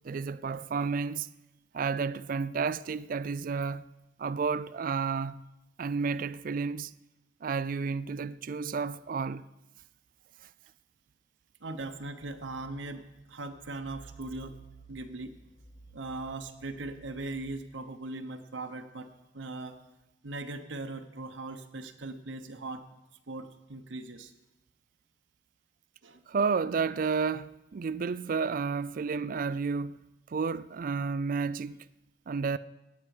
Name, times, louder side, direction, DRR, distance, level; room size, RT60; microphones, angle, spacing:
voice 1, 0.0-1.3 1.7-3.8 4.2-5.4 5.8-6.9 7.4-9.4 10.4-10.5 26.3-30.0 30.3-31.8 32.3-32.6, right 5 dB, 45° right, 0.4 m, -31 dB
voice 2, 11.6-14.6 14.9-15.3 15.9-19.8 20.2-22.8 23.3-24.3 26.0-26.2, right 2 dB, 80° right, 0.9 m, -39 dB
sound 1, 12.0-17.6, right 4 dB, 20° left, 0.7 m, -55 dB
17.0 x 9.5 x 4.8 m
head